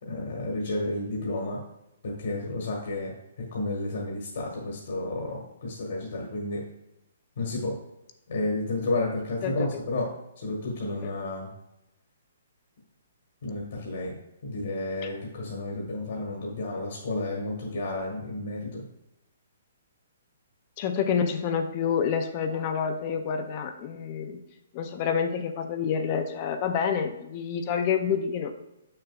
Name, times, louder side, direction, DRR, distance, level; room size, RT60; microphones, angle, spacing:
voice 1, 0.0-1.6 2.0-3.1 3.5-6.6 7.4-7.8 8.3-10.1 10.4-11.5 13.4-14.1 14.4-18.8, left 2 dB, 50° left, -2 dB, 1.4 m, -31 dB
voice 2, 20.8-24.4 24.7-28.5, left 7 dB, 25° left, 7 dB, 0.4 m, -28 dB
7.0 x 6.3 x 2.3 m, 0.88 s
hypercardioid pair, 180°, 0 cm